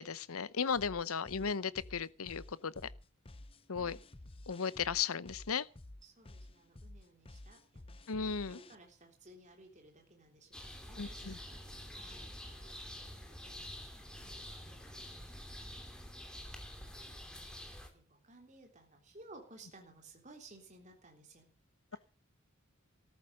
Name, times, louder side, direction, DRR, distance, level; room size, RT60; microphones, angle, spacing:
voice 1, 0.0-2.7 3.7-4.0 4.5-5.7 8.1-8.6 11.0-11.4, left 6 dB, 80° left, 0.8 m, -35 dB
sound 1, 0.8-8.8, left 1 dB, 25° left, 0.7 m, -52 dB
voice 2, 1.4-1.7 3.8-4.0 6.0-15.7 16.3-16.6 17.0-21.5 21.9-22.0, right 2 dB, 35° right, 3.5 m, -59 dB
sound 2, 10.5-17.9, equal, 5° left, 2.9 m, -48 dB
14.0 x 11.5 x 6.6 m
head